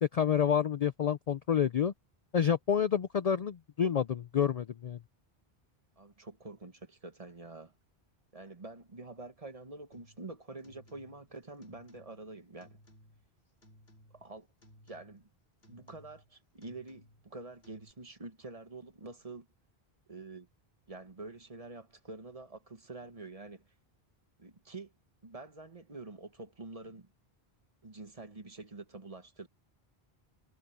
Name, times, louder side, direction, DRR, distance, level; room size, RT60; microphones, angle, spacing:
voice 1, 0.0-1.9 2.3-5.0, left 8 dB, 50° left, 0.5 m, -28 dB
voice 2, 6.0-7.7 8.3-12.8 14.1-14.5 14.9-15.3 15.7-19.5 20.1-20.5 20.9-23.7 24.4-24.9 25.2-27.1 27.8-29.5, right 3 dB, 35° right, 1.4 m, -47 dB
sound 1, 9.9-10.3 10.6-11.3 11.6-12.3 12.6-13.3 13.6-14.3 14.6-15.3 15.6-16.3 16.6-17.3 17.6-17.9, equal, 85° left, 5.1 m, -60 dB
omnidirectional pair, 1.0 m